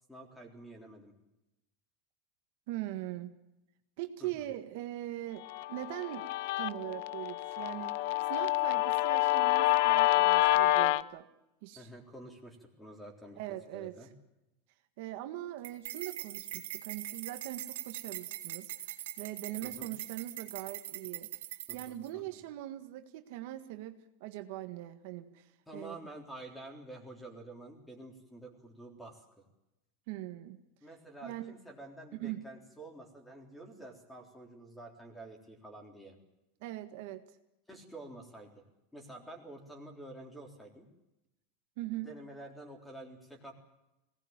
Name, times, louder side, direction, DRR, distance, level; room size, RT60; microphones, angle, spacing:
voice 1, 0.1-1.1 4.2-4.5 11.8-13.4 13.7-14.1 19.6-19.9 21.7-22.4 25.7-29.3 30.8-36.2 37.7-38.6 38.9-40.9 42.0-43.5, right 1 dB, 5° left, 3 dB, 3.7 m, -49 dB
voice 2, 2.7-3.3 4.0-6.3 6.6-8.0 8.3-11.3 11.6-11.9 13.4-14.1 15.0-21.3 21.7-26.0 30.1-30.6 31.2-31.5 32.1-32.4 36.6-37.2 41.8-42.1, right 14 dB, 55° right, 7 dB, 1.6 m, -41 dB
Guitar, 5.5-11.0, left 17 dB, 60° left, 0.7 m, -28 dB
sound 1, 15.6-22.1, right 13 dB, 80° right, 2.9 m, -42 dB
22.5 x 18.5 x 8.9 m, 0.93 s
supercardioid pair, 165°, 0 cm